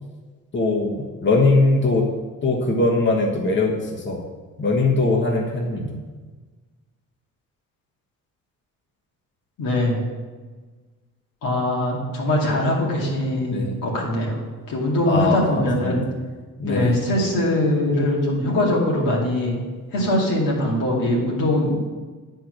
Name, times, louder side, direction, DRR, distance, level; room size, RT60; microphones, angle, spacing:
voice 1, 0.5-2.1 2.4-3.8 4.0-4.2 4.6-6.0 13.5-13.8 15.1-16.0 16.6-16.9, left 2 dB, 35° left, -1 dB, 1.4 m, -21 dB
voice 2, 9.6-10.0 11.4-14.4 14.7-16.0 16.7-19.6 19.9-21.8, left 1 dB, 85° left, -3 dB, 2.3 m, -22 dB
9.2 x 4.5 x 6.4 m, 1.4 s
cardioid pair, 85°, 32 cm